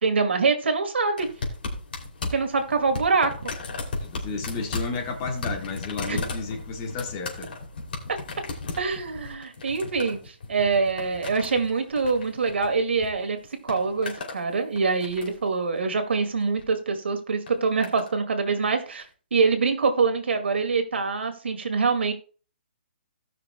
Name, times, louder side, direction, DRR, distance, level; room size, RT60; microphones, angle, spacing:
voice 1, 0.0-1.3 2.3-3.5 6.1-6.2 8.8-13.4 13.6-19.1 19.3-22.1, right 4 dB, 80° right, 6 dB, 2.0 m, -24 dB
sound 1, 1.2-13.1 13.4-14.4 14.8-15.5 16.4-16.7 17.5-18.1 19.0-19.1, left 3 dB, 55° left, 2.8 m, -35 dB
voice 2, 4.0-7.5, left 4 dB, 20° left, 3 dB, 1.2 m, -32 dB
18.0 x 6.1 x 2.2 m, 0.38 s
hypercardioid pair, 175°, 6 cm